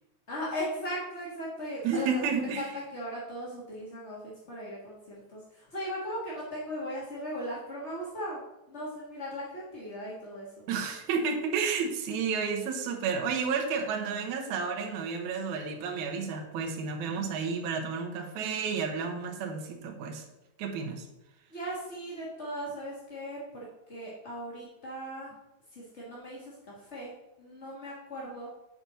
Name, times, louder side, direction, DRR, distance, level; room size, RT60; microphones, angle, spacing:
voice 1, 0.3-8.4 8.7-10.5 21.5-25.3 25.7-27.1 27.4-28.5, equal, 40° left, -5 dB, 0.9 m, -38 dB
voice 2, 1.8-2.7 10.7-20.2 20.6-21.1, right 5 dB, 65° right, 2 dB, 2.4 m, -31 dB
9.2 x 4.4 x 5.6 m, 0.91 s
omnidirectional pair, 3.9 m